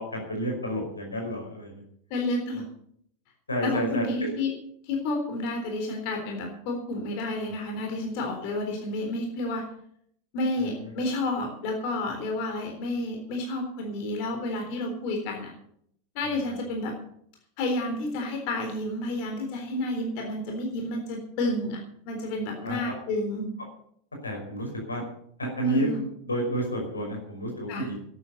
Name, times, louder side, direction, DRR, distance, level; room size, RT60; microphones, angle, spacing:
voice 1, 0.0-1.8 3.5-4.3 10.6-10.9 16.2-16.5 22.6-22.8 24.2-25.0 25.4-27.9, right 1 dB, 90° left, 1 dB, 5.4 m, -30 dB
voice 2, 2.1-2.6 3.6-4.5 4.8-9.7 10.3-15.5 16.2-16.9 17.6-23.5 25.6-26.0 27.7-27.9, left 2 dB, 55° left, 3 dB, 3.7 m, -30 dB
12.5 x 9.7 x 8.2 m, 0.67 s
hypercardioid pair, 90°, 0 cm